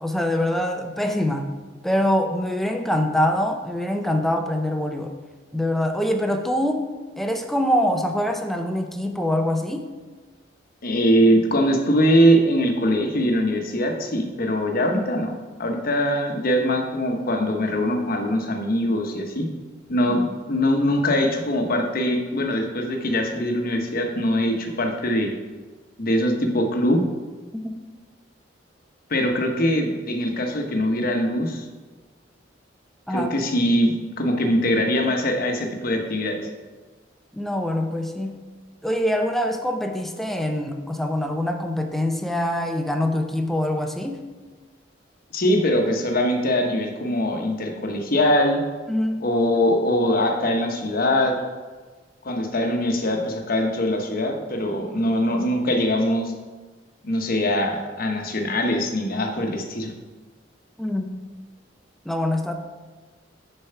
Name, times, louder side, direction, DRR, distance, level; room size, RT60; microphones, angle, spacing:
voice 1, 0.0-1.5 1.8-5.1 5.5-6.8 7.2-9.8 27.6-27.7 33.1-33.3 37.3-38.4 38.8-44.2 48.9-49.2 60.8-61.2 62.0-62.5, left 1 dB, ahead, 4 dB, 0.6 m, -24 dB
voice 2, 10.8-19.5 19.9-25.3 26.0-27.0 29.1-31.7 33.1-36.5 45.3-48.6 49.2-51.4 52.2-56.3 57.0-59.9, equal, 55° left, 3 dB, 1.0 m, -22 dB
6.6 x 4.6 x 5.6 m, 1.3 s
head